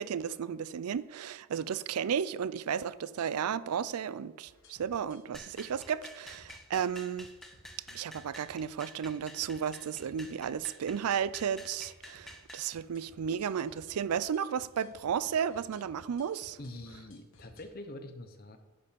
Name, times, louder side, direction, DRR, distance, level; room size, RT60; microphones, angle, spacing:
voice 1, 0.0-7.3 7.9-16.6, right 7 dB, 85° right, 0.4 m, -33 dB
sound 1, 4.5-17.6, left 1 dB, 55° left, 1.5 m, -59 dB
sound 2, 5.3-12.7, equal, ahead, 0.6 m, -50 dB
voice 2, 16.6-18.6, left 1 dB, 40° left, 0.8 m, -45 dB
11.0 x 5.5 x 5.2 m
head